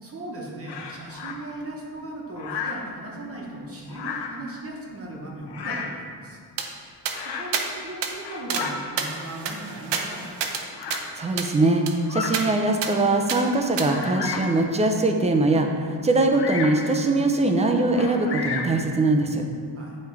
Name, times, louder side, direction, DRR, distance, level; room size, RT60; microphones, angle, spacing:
voice 1, 0.0-6.4 7.2-10.2 19.7-20.0, right 1 dB, 35° right, -2 dB, 0.9 m, -37 dB
Bird vocalization bird call bird song, 0.7-1.4 2.4-2.9 3.9-4.4 5.5-6.0 7.1-7.6 8.1-8.8 9.6-9.7 10.8-11.1 12.0-12.4 13.0-13.1 13.8-14.6 16.3-16.8 17.9-18.8, left 5 dB, 75° left, 0.8 m, -32 dB
sound 1, 6.6-6.7 7.0-7.2 7.5-7.7 8.0-8.1 8.5-8.7 9.0-10.6 10.9-11.0 11.4-11.5 11.9-12.0 12.3-12.4 12.8-12.9 13.3-13.4 13.8-13.9, right 6 dB, 90° right, 0.7 m, -29 dB
voice 2, 11.2-11.8 12.1-19.4, right 2 dB, 15° right, 3 dB, 0.4 m, -22 dB
8.5 x 3.2 x 4.6 m, 2.1 s
wide cardioid pair, 175°, 41 cm